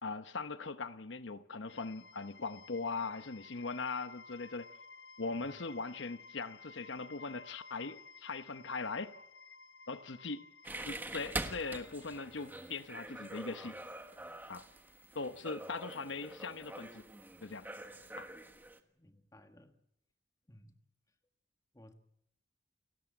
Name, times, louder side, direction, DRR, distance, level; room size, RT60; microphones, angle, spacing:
voice 1, 0.0-4.7 5.2-9.1 9.9-10.5 10.9-13.8 14.5-14.7 15.1-17.1 17.4-17.7 18.2-18.3, left 4 dB, 80° left, 1.0 m, -40 dB
sound 1, 1.7-15.6, left 4 dB, 60° left, 1.2 m, -56 dB
sound 2, 10.6-18.8, right 1 dB, 10° right, 1.4 m, -45 dB
voice 2, 18.9-19.7 20.5-20.8 21.7-21.9, left 1 dB, 20° left, 1.5 m, -59 dB
29.0 x 13.5 x 8.9 m
head